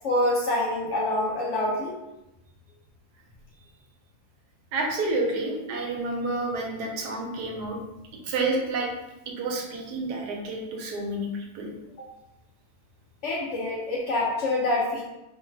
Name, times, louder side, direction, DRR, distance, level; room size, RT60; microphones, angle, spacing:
voice 1, 0.0-2.0 12.0-12.1 13.2-15.0, left 1 dB, 65° left, -3 dB, 0.7 m, -26 dB
voice 2, 4.7-7.8 8.2-8.9 9.3-11.7, right 2 dB, 90° right, 1 dB, 1.2 m, -29 dB
3.1 x 2.1 x 3.2 m, 0.93 s
omnidirectional pair, 1.7 m